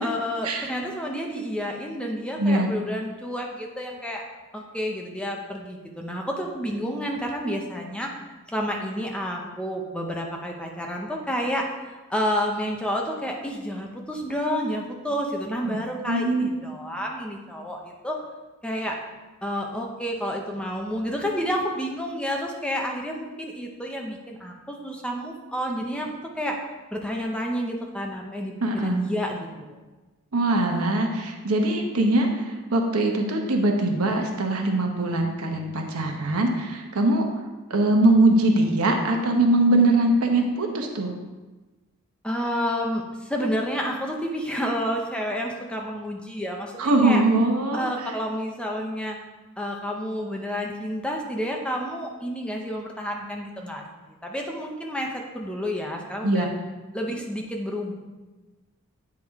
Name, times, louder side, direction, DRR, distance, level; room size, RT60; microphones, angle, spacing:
voice 1, 0.0-4.2 4.5-8.1 8.5-18.2 18.6-19.0 19.4-26.1 26.4-26.6 26.9-29.6 42.2-47.2 47.7-49.2 49.6-53.8 54.2-56.5 56.9-57.9, equal, 5° left, 0 dB, 0.7 m, -30 dB
voice 2, 16.1-16.6 28.6-29.0 30.3-37.2 37.7-41.1 46.8-47.8 56.2-56.4, right 2 dB, 90° right, 3 dB, 1.0 m, -22 dB
8.5 x 4.8 x 3.5 m, 1.2 s
head